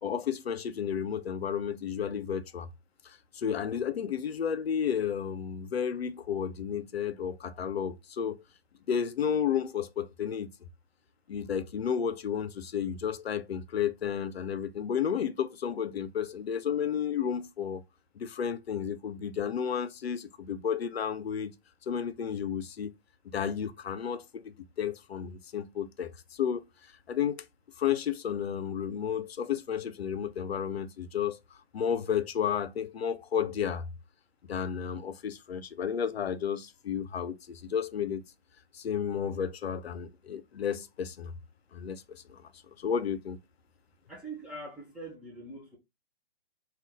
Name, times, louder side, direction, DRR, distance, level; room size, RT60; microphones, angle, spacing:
voice 1, 0.0-2.7 3.0-8.4 8.9-10.5 11.3-17.8 18.2-21.5 21.9-23.0 23.3-26.6 27.1-27.4 27.8-31.4 31.7-33.9 34.5-38.2 38.7-41.3 41.7-42.4 42.8-43.4, left 8 dB, 80° left, 0.5 m, -32 dB
voice 2, 44.1-45.8, right 2 dB, 5° right, 0.5 m, -43 dB
2.5 x 2.3 x 3.5 m
figure-of-eight pair, 130°, 31 cm